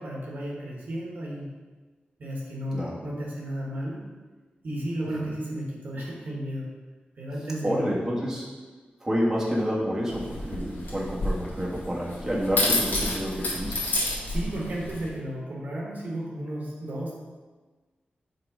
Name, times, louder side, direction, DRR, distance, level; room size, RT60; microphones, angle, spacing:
voice 1, 0.0-1.5 2.2-4.1 4.6-6.7 7.2-8.0 14.3-17.1, right 1 dB, 60° right, -3 dB, 1.2 m, -33 dB
voice 2, 7.6-8.4 9.0-13.8, equal, 15° right, -5 dB, 1.3 m, -28 dB
sound 1, 10.1-15.1, left 2 dB, 70° left, 1.6 m, -30 dB
5.9 x 3.8 x 4.8 m, 1.3 s
wide cardioid pair, 130°, 3 cm